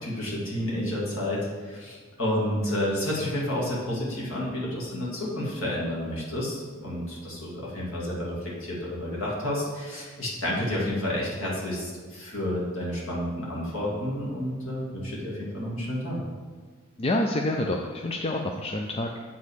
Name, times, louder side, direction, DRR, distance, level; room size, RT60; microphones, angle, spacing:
voice 1, 0.0-16.2, left 1 dB, 60° left, -5 dB, 2.7 m, -30 dB
voice 2, 17.0-19.2, left 1 dB, 25° left, 2 dB, 0.4 m, -27 dB
8.5 x 4.0 x 6.6 m, 1.5 s
head